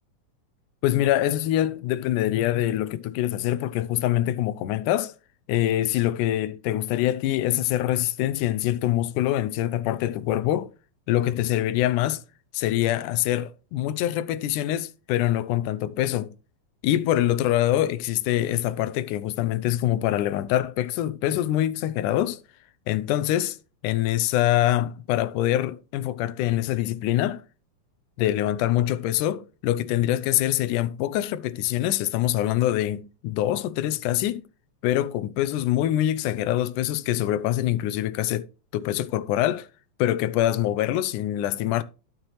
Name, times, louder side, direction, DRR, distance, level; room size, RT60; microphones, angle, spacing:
voice 1, 0.8-5.1 5.5-10.7 11.1-12.2 12.5-16.3 16.8-22.4 22.9-23.6 23.8-27.4 28.2-34.4 34.8-39.7 40.0-41.8, left 13 dB, 85° left, 2.1 m, -24 dB
12.0 x 6.0 x 3.2 m
omnidirectional pair, 3.6 m